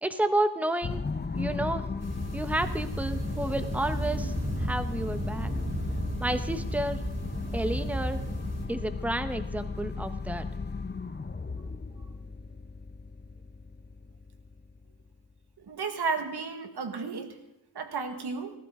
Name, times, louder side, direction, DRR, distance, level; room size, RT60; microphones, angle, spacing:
voice 1, 0.0-1.0 1.3-1.9 2.3-5.5 6.2-7.0 7.5-8.2 8.7-10.5, right 1 dB, 5° right, 10 dB, 0.9 m, -30 dB
sound 1, 0.8-15.3, left 4 dB, 25° left, 0.7 m, -36 dB
sound 2, 2.0-8.6, right 1 dB, 40° right, 3.2 m, -34 dB
voice 2, 15.6-17.4 17.7-18.5, right 4 dB, 90° right, 7 dB, 1.6 m, -33 dB
17.5 x 14.5 x 3.7 m, 0.91 s
wide cardioid pair, 90°, 38 cm